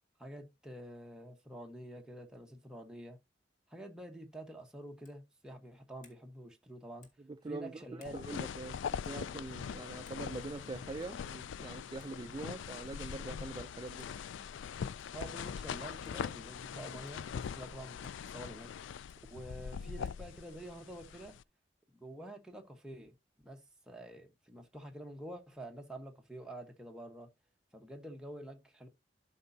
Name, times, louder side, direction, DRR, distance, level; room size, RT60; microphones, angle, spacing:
voice 1, 0.2-3.2 3.7-7.1 7.5-8.2 15.1-18.7 19.3-21.4 21.9-23.1 23.4-27.3 27.7-28.9, right 1 dB, 5° right, 1.1 m, -48 dB
sound 1, 5.0-5.3 6.0-6.2 7.0-7.3 8.0-8.2 9.0-9.2 10.1-10.3 11.0-11.2 12.0-12.2 13.0-13.1 14.0-14.2 15.0-15.2 16.0-16.2 17.1-17.2 18.0-18.2 19.1-19.2 20.0-20.2, left 4 dB, 45° left, 1.9 m, -64 dB
voice 2, 7.3-14.1, right 3 dB, 25° right, 0.3 m, -44 dB
sound 2, 8.0-21.4, left 7 dB, 90° left, 0.3 m, -42 dB
12.0 x 5.4 x 2.7 m
head